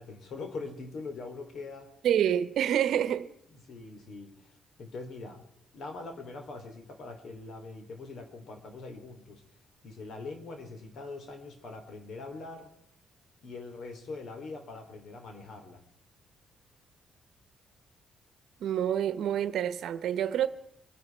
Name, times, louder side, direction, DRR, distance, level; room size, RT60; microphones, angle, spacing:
voice 1, 0.0-1.9 3.5-5.5 5.7-9.4 9.8-12.7 13.4-15.8, left 3 dB, 65° left, 3.0 m, -42 dB
voice 2, 2.0-3.3 18.6-20.5, right 10 dB, 75° right, 0.9 m, -27 dB
25.0 x 10.5 x 4.5 m
cardioid pair, 90°, 0 cm